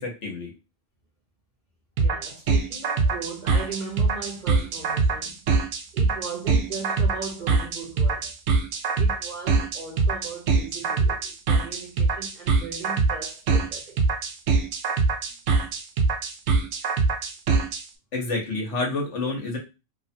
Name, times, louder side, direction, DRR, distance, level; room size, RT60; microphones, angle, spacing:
voice 1, 0.0-0.5 18.1-19.6, left 3 dB, 65° left, 1.3 m, -28 dB
voice 2, 2.0-5.5 5.9-8.4 9.0-14.0, right 5 dB, 50° right, 0.6 m, -38 dB
sound 1, 2.0-17.8, right 4 dB, 90° right, 1.0 m, -23 dB
2.9 x 2.3 x 2.6 m
omnidirectional pair, 1.3 m